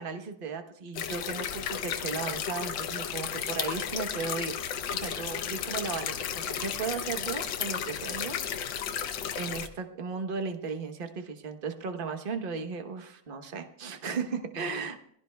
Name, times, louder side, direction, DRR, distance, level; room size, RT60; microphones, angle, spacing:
voice 1, 0.0-4.6 4.9-8.4 8.9-15.1, right 5 dB, 40° right, 6 dB, 0.7 m, -36 dB
sound 1, 0.9-9.7, left 8 dB, 65° left, 1.4 m, -33 dB
22.5 x 16.5 x 2.3 m, 0.68 s
omnidirectional pair, 2.3 m